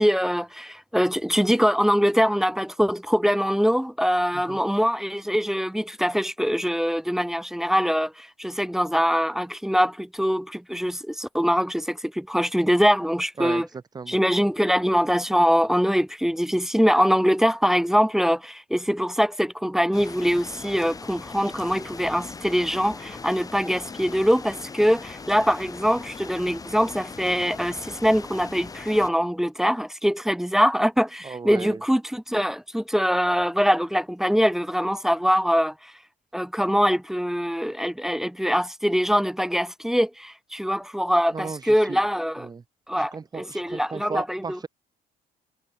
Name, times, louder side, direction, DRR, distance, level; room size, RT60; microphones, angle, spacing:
voice 1, 0.0-13.7 14.1-35.9 36.3-42.5 42.9-44.6, equal, ahead, 0.4 m, -23 dB
sound 1, 19.9-29.1, left 4 dB, 20° left, 4.7 m, -40 dB
voice 2, 31.2-31.8 41.3-41.6 41.9-42.0 42.4-42.6 43.0-44.7, right 5 dB, 20° right, 2.7 m, -35 dB
cardioid pair, 165°, 19 cm